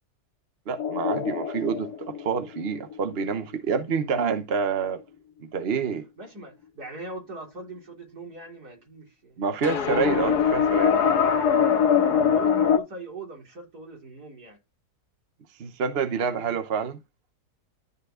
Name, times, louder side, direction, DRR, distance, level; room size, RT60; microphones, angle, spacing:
voice 1, 0.7-5.0 5.5-6.1 9.4-11.0 15.6-17.0, right 5 dB, 45° right, 1.0 m, -27 dB
sound 1, 0.8-3.1 9.6-12.8, left 7 dB, 90° left, 1.7 m, -22 dB
voice 2, 6.2-10.2 12.0-14.6, right 2 dB, 75° right, 4.2 m, -41 dB
13.0 x 4.5 x 3.8 m
omnidirectional pair, 1.7 m